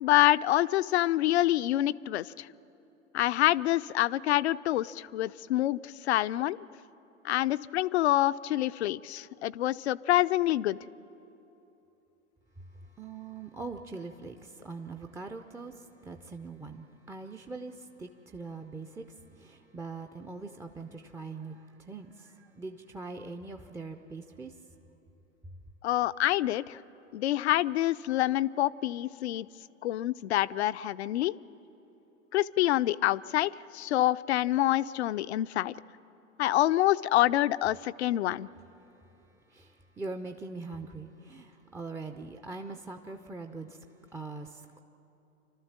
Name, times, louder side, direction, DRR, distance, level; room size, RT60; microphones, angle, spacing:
voice 1, 0.0-2.5 3.1-6.6 7.2-10.8 25.8-26.8 27.1-29.5 29.8-31.3 32.3-35.7 36.4-38.5, left 14 dB, 55° left, 16 dB, 0.6 m, -27 dB
voice 2, 13.0-19.0 19.4-24.5 39.5-43.8 44.1-44.8, right 3 dB, 5° right, 5 dB, 0.5 m, -42 dB
29.0 x 13.0 x 7.3 m, 3.0 s
figure-of-eight pair, 95°, 39 cm